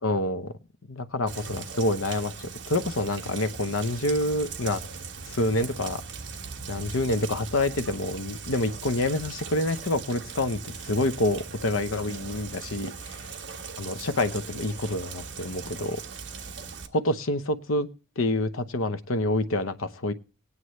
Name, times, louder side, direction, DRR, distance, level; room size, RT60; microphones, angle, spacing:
voice 1, 0.0-0.6 0.9-4.8 5.3-6.0 6.7-13.2 13.8-16.0 16.9-17.9 18.2-20.1, left 2 dB, 85° left, 9 dB, 0.9 m, -27 dB
Rain, 1.3-16.9, right 5 dB, 65° right, 1.3 m, -39 dB
19.0 x 9.7 x 3.2 m, 0.34 s
head